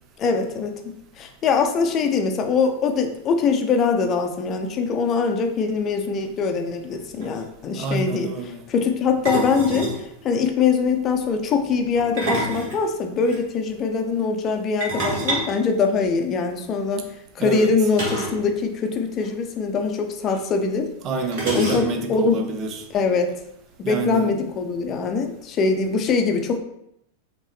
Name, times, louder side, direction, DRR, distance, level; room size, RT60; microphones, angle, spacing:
voice 1, 0.2-8.3 8.7-9.9 10.2-17.1 17.3-20.9 21.5-22.4 22.9-23.3 23.8-26.6, left 5 dB, 30° left, 5 dB, 0.6 m, -23 dB
sound 1, 6.9-7.0 7.2-7.4 9.2-10.0 12.0-13.4 14.8-16.5 17.9-18.5 18.7-18.8 19.1-19.3 20.3-20.4 21.3-22.2, right 1 dB, 50° right, 1.7 m, -28 dB
voice 2, 7.7-8.6 17.4-17.7 21.0-22.8 23.8-24.3, right 4 dB, 35° right, 4 dB, 0.7 m, -27 dB
5.4 x 3.0 x 3.2 m, 0.77 s
figure-of-eight pair, 90°, 0 cm